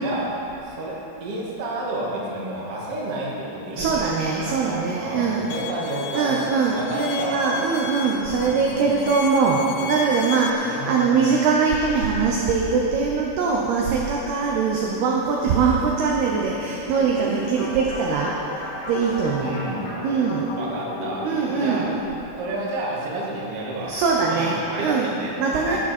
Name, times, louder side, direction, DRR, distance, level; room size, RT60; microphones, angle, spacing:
voice 1, 0.0-4.1 4.4-6.4 6.7-7.5 8.4-9.1 10.5-11.3 19.4-19.9 20.6-21.3 21.5-22.0 22.4-24.0 24.3-25.8, right 1 dB, 40° right, -5 dB, 2.2 m, -30 dB
voice 2, 3.7-5.5 6.1-19.5 20.0-20.6 21.2-21.9 23.8-25.1 25.4-25.8, right 5 dB, 75° right, -2 dB, 2.4 m, -22 dB
Bowed string instrument, 5.5-10.5, left 7 dB, 90° left, 3.4 m, -35 dB
sound 1, 16.9-22.0, left 2 dB, 70° left, 5.0 m, -34 dB
17.0 x 11.5 x 4.4 m, 3.0 s
omnidirectional pair, 5.8 m